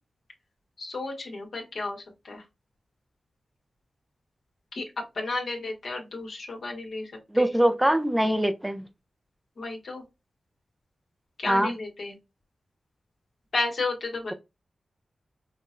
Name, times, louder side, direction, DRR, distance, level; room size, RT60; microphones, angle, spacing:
voice 1, 0.8-2.4 4.7-4.8 5.1-7.5 9.6-10.0 11.4-12.1 13.5-14.3, left 3 dB, 70° left, 1.3 m, -32 dB
voice 2, 7.3-8.8 11.5-11.7, right 1 dB, 10° right, 0.5 m, -23 dB
5.4 x 2.1 x 2.5 m
cardioid pair, 65°, 0 cm